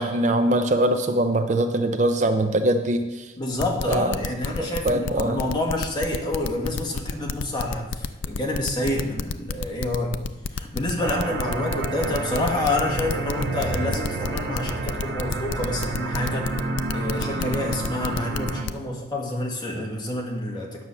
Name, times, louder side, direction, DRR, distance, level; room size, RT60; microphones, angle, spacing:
voice 1, 0.0-3.3 3.9-4.1 4.8-5.5, right 1 dB, 40° right, 7 dB, 0.5 m, -22 dB
voice 2, 3.4-10.2 10.5-16.5 16.9-20.8, left 1 dB, 25° left, -1 dB, 1.7 m, -28 dB
sound 1, 3.6-18.7, left 4 dB, 80° left, 0.5 m, -29 dB
sound 2, 11.0-18.6, right 3 dB, 75° right, 1.2 m, -29 dB
9.5 x 6.1 x 7.0 m, 1.1 s
head